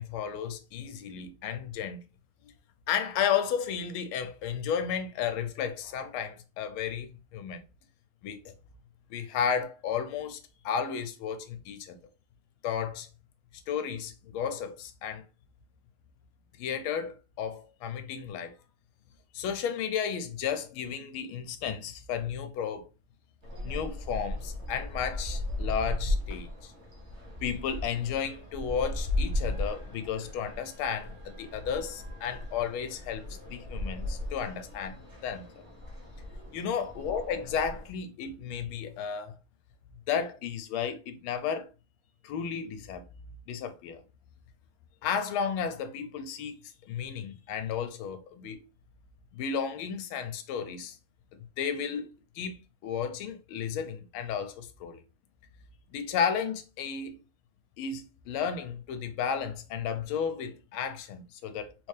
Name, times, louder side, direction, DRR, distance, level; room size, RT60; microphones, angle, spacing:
voice 1, 0.0-2.1 2.4-2.5 2.9-7.6 8.2-8.4 9.1-10.4 10.6-12.0 12.6-13.1 13.7-15.2 16.6-18.6 19.3-22.9 23.6-26.7 27.4-35.0 35.2-35.7 36.5-39.3 40.1-41.7 42.2-43.1 43.5-44.0 45.0-48.6 49.3-51.0 51.6-52.1 52.3-55.0 55.9-57.2 57.8-61.9, left 7 dB, 80° left, 1.4 m, -33 dB
sound 1, 23.4-37.9, left 1 dB, 40° right, 1.1 m, -36 dB
3.8 x 2.7 x 3.2 m
omnidirectional pair, 2.3 m